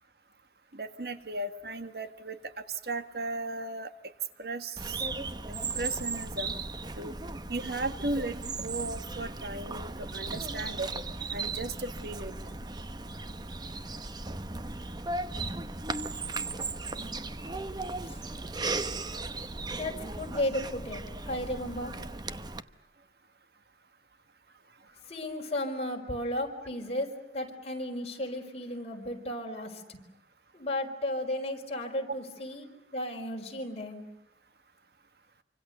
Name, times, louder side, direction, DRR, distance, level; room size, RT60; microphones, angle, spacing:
voice 1, 0.7-3.9 4.4-5.0 5.7-6.5 7.0-7.2 7.5-8.4 8.6-10.9 11.3-12.4, right 2 dB, 60° right, 10 dB, 1.5 m, -36 dB
Bird vocalization bird call bird song, 4.8-22.6, right 3 dB, 25° right, 0.9 m, -36 dB
voice 2, 19.8-21.9 25.1-30.0 30.5-34.0, left 1 dB, 35° left, 2 dB, 4.9 m, -34 dB
27.0 x 25.5 x 6.8 m, 0.91 s
head